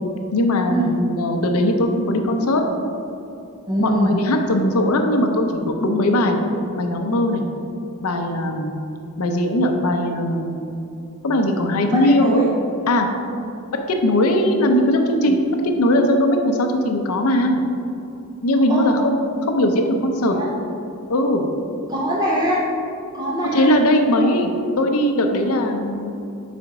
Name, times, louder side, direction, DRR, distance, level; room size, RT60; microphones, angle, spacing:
voice 1, 0.3-2.6 3.8-6.4 6.8-7.4 8.0-8.8 9.2-10.6 11.2-12.4 12.9-13.1 13.9-17.6 18.4-19.2 19.5-20.4 21.1-21.4 23.5-24.5 24.8-26.1, left 1 dB, 85° left, 4 dB, 0.6 m, -19 dB
voice 2, 3.7-4.1 11.9-12.5 15.3-15.4 18.7-18.9 20.3-20.5 21.9-22.6 23.1-23.7, equal, 20° right, -5 dB, 0.5 m, -22 dB
5.0 x 4.2 x 4.7 m, 2.7 s
head